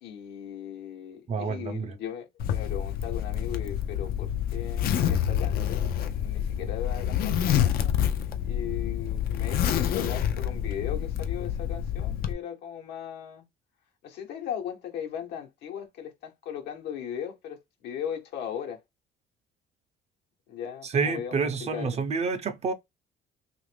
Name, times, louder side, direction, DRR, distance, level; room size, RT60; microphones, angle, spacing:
voice 1, 0.0-7.9 8.4-13.4 14.0-18.8 20.5-22.0, left 9 dB, 80° left, 1.0 m, -38 dB
voice 2, 1.3-1.9 20.8-22.7, right 5 dB, 40° right, 0.6 m, -28 dB
Zipper (clothing), 2.4-12.3, left 9 dB, 60° left, 0.5 m, -28 dB
2.8 x 2.5 x 3.3 m
cardioid pair, 110°, 17 cm